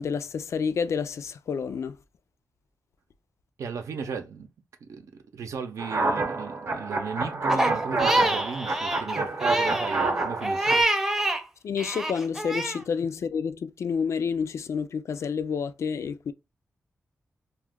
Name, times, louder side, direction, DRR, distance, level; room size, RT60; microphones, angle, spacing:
voice 1, 0.0-2.0 11.6-16.3, left 6 dB, 70° left, 0.3 m, -29 dB
voice 2, 3.6-4.5 4.8-5.1 5.3-10.8, right 6 dB, 85° right, 0.7 m, -35 dB
sound 1, 5.8-10.8, right 3 dB, 55° right, 0.8 m, -28 dB
Crying sobbing, 7.5-11.4 11.8-12.8, right 1 dB, 10° right, 0.5 m, -26 dB
2.5 x 2.3 x 3.5 m
wide cardioid pair, 115°, 5 cm